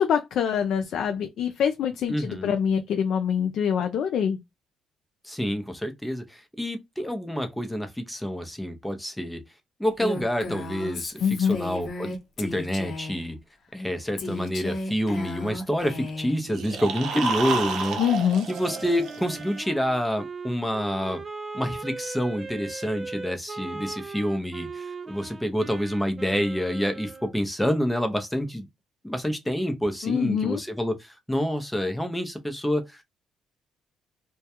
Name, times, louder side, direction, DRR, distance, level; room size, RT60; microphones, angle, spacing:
voice 1, 0.0-4.4 11.2-11.6 18.0-18.5 30.0-30.6, left 8 dB, 75° left, 0.3 m, -25 dB
voice 2, 2.1-2.5 5.2-9.4 9.8-13.4 13.7-18.0 18.5-21.2 21.5-28.7 29.0-33.0, equal, 5° left, 0.6 m, -28 dB
Female speech woman speaking, 10.0-13.3 14.2-16.4, left 2 dB, 55° left, 0.7 m, -34 dB
sound 1, 16.4-19.6, right 4 dB, 75° right, 0.6 m, -30 dB
Wind instrument woodwind instrument, 18.5-27.3, right 4 dB, 30° right, 0.4 m, -39 dB
2.2 x 2.2 x 2.8 m
cardioid pair, 90°, 0 cm